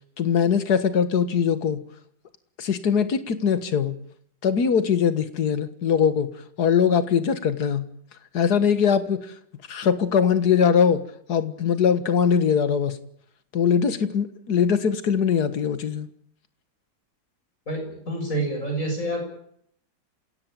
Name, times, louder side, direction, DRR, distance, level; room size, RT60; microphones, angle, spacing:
voice 1, 0.2-1.8 2.6-4.0 4.4-6.3 6.6-7.9 8.3-9.3 9.7-11.0 11.3-13.0 13.5-16.1, left 7 dB, 60° left, 12 dB, 2.0 m, -21 dB
voice 2, 17.7-19.2, right 1 dB, 45° left, 3 dB, 7.6 m, -28 dB
27.0 x 17.0 x 9.0 m, 0.68 s
omnidirectional pair, 1.9 m